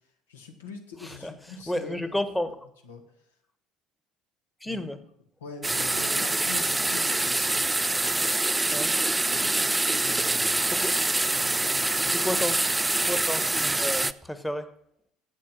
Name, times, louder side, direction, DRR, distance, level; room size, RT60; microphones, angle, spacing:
voice 1, 0.3-2.2 2.5-2.6 2.8-3.0 4.7-4.8 5.4-7.7 8.7-12.4, left 4 dB, 80° left, 3 dB, 1.7 m, -44 dB
voice 2, 1.7-2.6 4.6-5.0 8.7-8.9 10.7-10.9 12.2-12.6 13.1-14.7, left 1 dB, 5° left, 11 dB, 1.2 m, -31 dB
sound 1, 5.6-14.1, right 2 dB, 10° right, 0.4 m, -25 dB
8.7 x 8.4 x 7.6 m, 0.73 s
hypercardioid pair, 60°, 0 cm